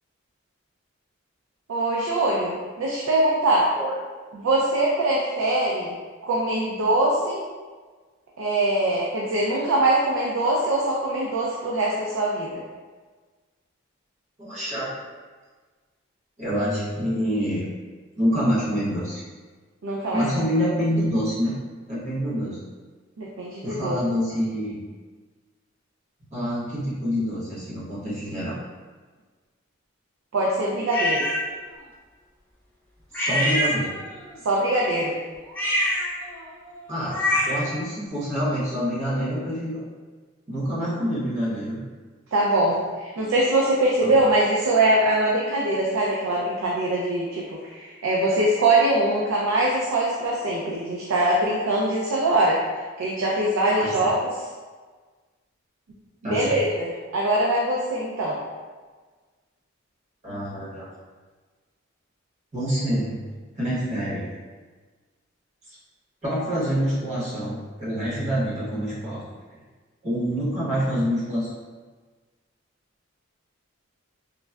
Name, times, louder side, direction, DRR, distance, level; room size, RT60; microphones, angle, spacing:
voice 1, 1.7-3.7 4.3-6.0 6.2-7.4 8.4-12.6 19.8-20.2 23.2-24.0 30.3-31.3 34.4-35.1 42.3-52.6 53.0-54.3 56.2-58.4, right 1 dB, 85° right, -4 dB, 0.4 m, -23 dB
voice 2, 14.4-14.9 16.4-17.7 18.2-19.2 20.1-21.5 21.9-22.6 23.6-24.8 26.3-28.6 33.1-33.9 36.9-39.8 40.5-41.8 44.0-44.1 53.8-54.1 56.2-56.6 60.2-60.9 62.5-63.2 63.6-64.3 65.7-65.8 66.2-69.2 70.0-71.5, equal, 35° right, -9 dB, 1.0 m, -26 dB
sound 1, 30.9-31.4 33.1-34.2 35.5-37.7, left 1 dB, 10° left, 0.5 m, -25 dB
3.7 x 2.1 x 2.2 m, 1.4 s
head